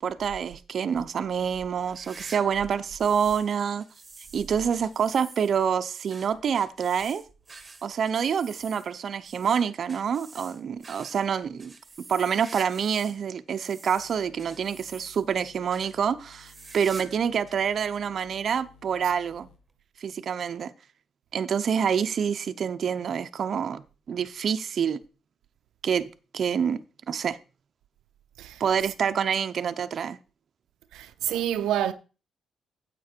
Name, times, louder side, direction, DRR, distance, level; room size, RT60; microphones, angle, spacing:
voice 1, 0.0-3.8 4.3-7.2 7.8-19.5 20.0-20.7 21.3-25.0 25.8-27.4 28.6-30.2, right 7 dB, 55° right, 0.7 m, -27 dB
sound 1, 1.8-3.5 3.8-13.2 13.5-15.4 15.7-15.9 16.3-17.2 17.5-17.6 18.4-18.5 19.7-19.8, right 3 dB, 25° right, 1.5 m, -47 dB
sound 2, 14.0-19.6, left 4 dB, 85° left, 1.9 m, -56 dB
voice 2, 30.9-31.9, right 11 dB, 85° right, 0.6 m, -28 dB
9.5 x 7.6 x 4.5 m
cardioid pair, 90°, 0 cm